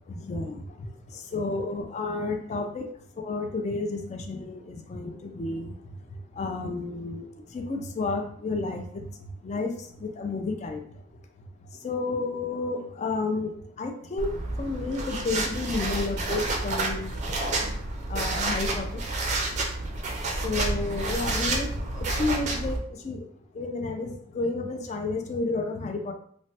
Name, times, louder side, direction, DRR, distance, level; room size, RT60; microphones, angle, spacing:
voice 1, 0.1-0.6 1.3-2.8 3.2-5.7 6.4-7.2 7.5-8.8 9.4-9.7 10.0-10.8 11.8-13.5 13.8-14.3 14.6-17.1 18.1-19.0 20.4-21.7 22.0-22.8 23.0-23.2 23.6-26.1, left 3 dB, 35° left, 5 dB, 0.3 m, -31 dB
sound 1, 14.2-22.8, right 2 dB, 35° right, 0.4 m, -29 dB
3.1 x 2.1 x 2.7 m, 0.64 s
head